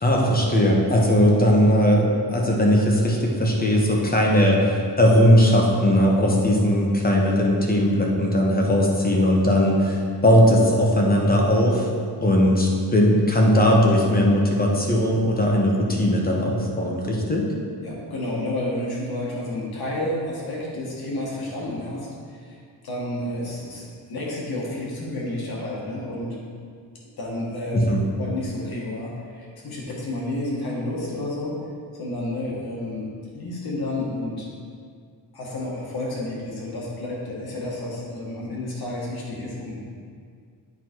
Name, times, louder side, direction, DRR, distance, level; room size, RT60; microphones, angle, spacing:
voice 1, 0.0-11.9 12.2-17.5 27.7-28.0, equal, 20° left, -1 dB, 1.0 m, -19 dB
voice 2, 17.8-26.4 27.2-27.8 28.2-31.6 32.0-34.5 35.3-39.9, left 1 dB, 60° left, -4 dB, 1.8 m, -30 dB
9.3 x 4.0 x 4.6 m, 2.2 s
wide cardioid pair, 150°, 41 cm